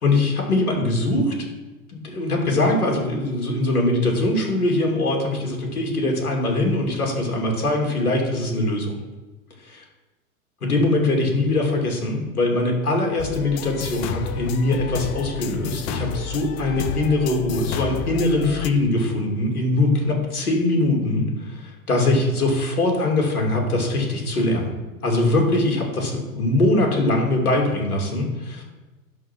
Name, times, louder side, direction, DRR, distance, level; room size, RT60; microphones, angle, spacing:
voice 1, 0.0-1.3 1.9-8.9 9.6-9.8 10.6-24.7 25.0-28.6, left 2 dB, 80° left, 0 dB, 2.9 m, -22 dB
sound 1, 13.2-18.7, left 10 dB, 35° left, 0.6 m, -31 dB
11.0 x 4.5 x 6.3 m, 1.2 s
figure-of-eight pair, 95°, 44 cm